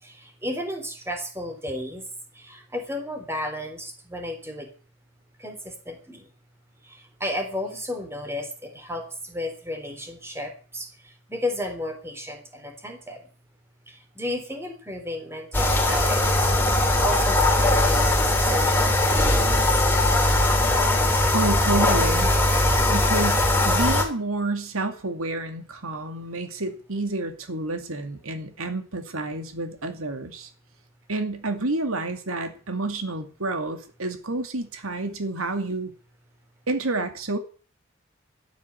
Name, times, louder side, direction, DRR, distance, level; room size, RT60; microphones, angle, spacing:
voice 1, 0.0-2.1 2.3-4.7 5.4-6.3 6.8-13.3 13.9-18.2 18.4-19.7, left 1 dB, 10° right, 3.6 m, -33 dB
sound 1, 15.5-24.0, left 1 dB, 10° left, 3.6 m, -20 dB
voice 2, 21.3-22.3 22.9-30.5 31.1-35.9 36.7-37.4, right 2 dB, 80° right, 2.4 m, -29 dB
13.0 x 9.6 x 9.5 m
head